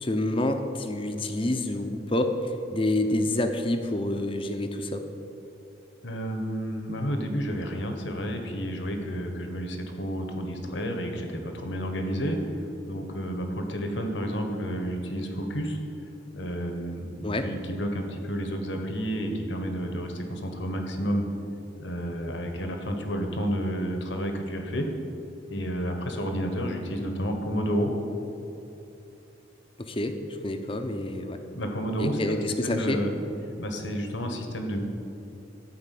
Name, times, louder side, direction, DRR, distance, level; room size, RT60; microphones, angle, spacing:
voice 1, 0.0-2.4 2.7-5.0 17.2-17.5 29.8-30.2 30.4-31.4 32.0-33.0, left 1 dB, 25° left, 6 dB, 0.7 m, -28 dB
voice 2, 6.0-15.8 16.3-21.2 21.8-24.9 25.5-27.9 31.5-33.1 33.6-34.8, equal, 70° left, 4 dB, 1.4 m, -30 dB
13.0 x 5.1 x 8.5 m, 3.0 s
head